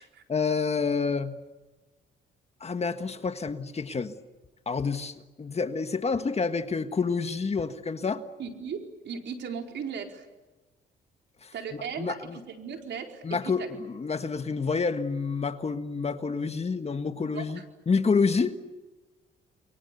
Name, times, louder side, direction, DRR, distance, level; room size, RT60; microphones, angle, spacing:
voice 1, 0.3-1.4 2.6-4.1 4.6-8.2 11.4-12.4 13.2-18.6, left 4 dB, 30° left, 9 dB, 1.6 m, -28 dB
voice 2, 8.4-10.3 11.5-13.7 17.3-17.5, right 6 dB, 65° right, 3 dB, 4.5 m, -37 dB
29.5 x 23.5 x 7.1 m, 1.1 s
cardioid pair, 90°, 20 cm